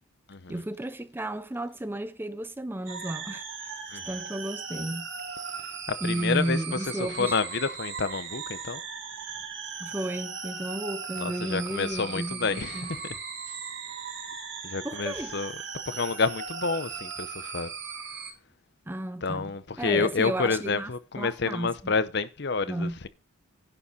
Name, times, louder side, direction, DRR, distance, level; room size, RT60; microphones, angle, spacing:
voice 1, 0.5-3.7 4.1-5.1 6.0-7.4 9.8-12.9 14.8-15.4 18.9-19.5 19.8-20.9 21.2-21.9 22.7-23.0, right 1 dB, 10° right, 0.5 m, -33 dB
sound 1, 2.9-18.3, right 6 dB, 60° right, 2.8 m, -38 dB
voice 2, 6.0-8.8 11.2-13.0 14.6-15.5 15.9-17.7 19.2-23.1, left 4 dB, 55° left, 0.8 m, -29 dB
10.5 x 7.0 x 4.2 m
head